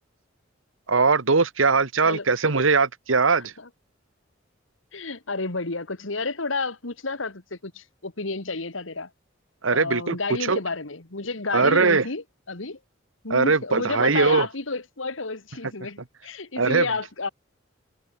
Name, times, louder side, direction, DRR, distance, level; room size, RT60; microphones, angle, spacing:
voice 1, 0.9-3.5 9.6-10.2 10.5-10.6 11.5-12.1 13.3-14.5 16.6-16.9, right 4 dB, 85° right, 1.4 m, -20 dB
voice 2, 4.9-9.1 9.7-12.8 13.2-17.3, left 3 dB, 80° left, 2.2 m, -31 dB
head